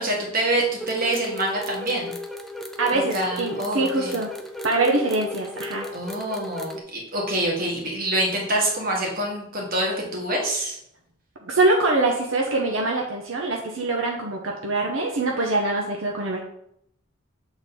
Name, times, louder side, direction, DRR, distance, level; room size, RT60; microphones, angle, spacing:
voice 1, 0.0-2.1 3.1-4.1 5.9-10.8, right 1 dB, 45° right, -1 dB, 1.8 m, -26 dB
sound 1, 0.8-6.8, left 1 dB, ahead, 0.5 m, -35 dB
voice 2, 2.8-4.3 4.6-5.9 11.4-16.4, right 2 dB, 75° right, 0 dB, 0.9 m, -24 dB
7.0 x 4.0 x 4.1 m, 0.73 s
head